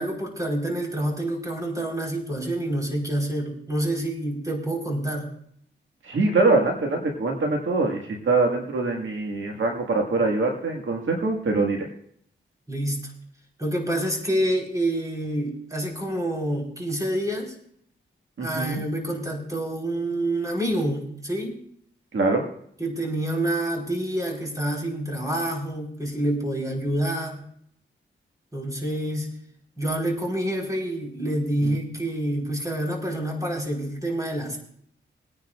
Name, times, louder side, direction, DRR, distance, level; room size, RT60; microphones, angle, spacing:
voice 1, 0.0-5.3 12.7-13.0 13.6-17.5 18.4-21.6 22.8-27.5 28.5-29.3 29.8-34.6, right 1 dB, 15° right, -1 dB, 4.3 m, -27 dB
voice 2, 6.0-11.9 18.4-18.8 22.1-22.4 31.6-31.8, right 3 dB, 70° right, 1 dB, 1.9 m, -23 dB
22.5 x 10.0 x 2.5 m, 0.65 s
cardioid pair, 75°, 21 cm